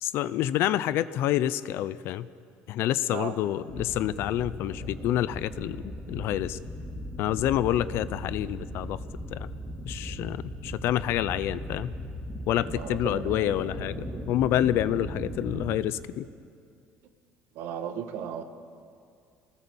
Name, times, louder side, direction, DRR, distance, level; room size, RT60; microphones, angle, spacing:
voice 1, 0.0-2.3 2.7-6.6 7.2-9.0 9.3-9.5 9.8-11.9 12.5-16.3, left 12 dB, 65° left, 16 dB, 0.7 m, -28 dB
sound 1, 3.7-15.7, equal, 15° right, 3.6 m, -38 dB
voice 2, 12.7-13.7 15.0-15.3 15.7-15.8 17.5-18.4, right 8 dB, 75° right, 7 dB, 1.9 m, -37 dB
27.0 x 19.0 x 7.2 m, 2.4 s
cardioid pair, 130°, 4 cm